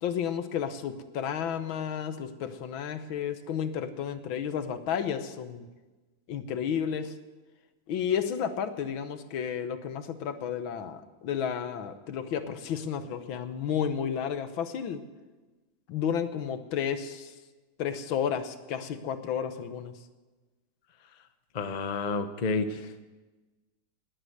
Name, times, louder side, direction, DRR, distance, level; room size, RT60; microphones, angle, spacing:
voice 1, 0.0-5.7 6.3-7.1 7.9-15.0 15.9-17.3 17.8-19.9, left 8 dB, 80° left, 10 dB, 1.8 m, -32 dB
voice 2, 21.5-23.0, left 3 dB, 40° left, 8 dB, 0.6 m, -30 dB
19.0 x 8.8 x 7.9 m, 1.2 s
omnidirectional pair, 2.1 m